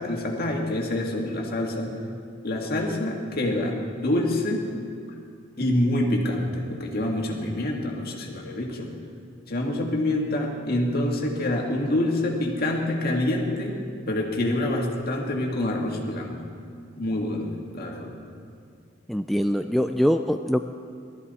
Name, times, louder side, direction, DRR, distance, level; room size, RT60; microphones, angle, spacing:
voice 1, 0.0-1.9 2.4-4.7 5.6-8.9 9.5-13.8 14.1-16.4 17.0-18.1, left 1 dB, 50° left, 0 dB, 2.0 m, -26 dB
voice 2, 19.1-20.6, equal, ahead, 6 dB, 0.3 m, -23 dB
19.5 x 13.5 x 4.1 m, 2.3 s
head